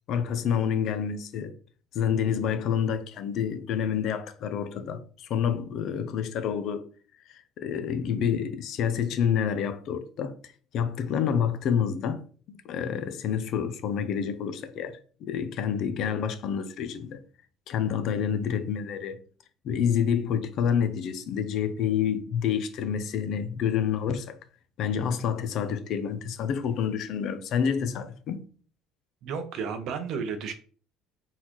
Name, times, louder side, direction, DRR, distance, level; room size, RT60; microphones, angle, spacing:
voice 1, 0.1-1.5 1.9-6.8 7.3-10.3 10.7-12.2 12.5-17.2 17.7-19.2 19.6-24.4 24.8-28.5, left 8 dB, 45° left, 0.6 m, -28 dB
voice 2, 29.2-30.5, right 6 dB, 50° right, 0.7 m, -32 dB
4.1 x 4.0 x 3.0 m
cardioid pair, 170°, 0 cm